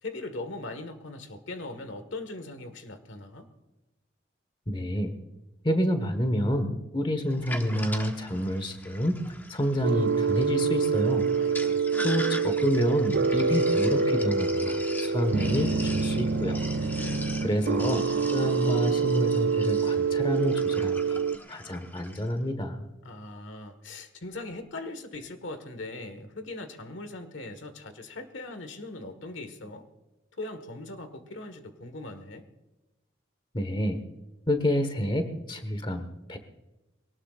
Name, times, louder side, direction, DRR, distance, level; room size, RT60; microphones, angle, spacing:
voice 1, 0.0-3.5 11.3-11.8 16.7-17.3 23.0-29.9 30.4-32.5, left 2 dB, 80° left, 9 dB, 1.6 m, -40 dB
voice 2, 4.7-5.1 5.6-9.2 9.5-11.3 12.0-16.6 17.4-18.0 18.3-21.2 21.5-22.9 33.5-34.0 34.5-36.4, equal, 25° left, 8 dB, 1.3 m, -28 dB
Sink (filling or washing), 7.3-22.3, left 1 dB, 10° left, 1.1 m, -41 dB
sound 1, 9.8-21.4, right 5 dB, 65° right, 0.5 m, -26 dB
22.5 x 18.5 x 2.5 m, 1.0 s
head